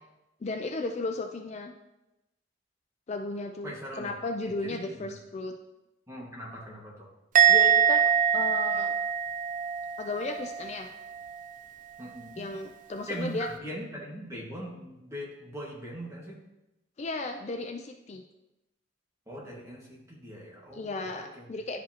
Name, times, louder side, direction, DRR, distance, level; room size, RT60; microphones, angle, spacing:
voice 1, 0.4-1.7 3.1-5.5 7.5-8.1 8.3-8.9 10.0-10.9 12.4-13.5 17.0-18.2 20.7-21.8, left 2 dB, 40° left, 5 dB, 0.4 m, -34 dB
voice 2, 3.6-4.1 4.5-5.1 6.1-7.1 12.0-12.4 13.1-16.4 19.3-21.5, equal, 15° right, -4 dB, 1.7 m, -41 dB
Musical instrument, 7.3-10.7 11.0-11.4, right 9 dB, 45° right, 0.5 m, -24 dB
11.5 x 5.1 x 2.9 m, 0.96 s
head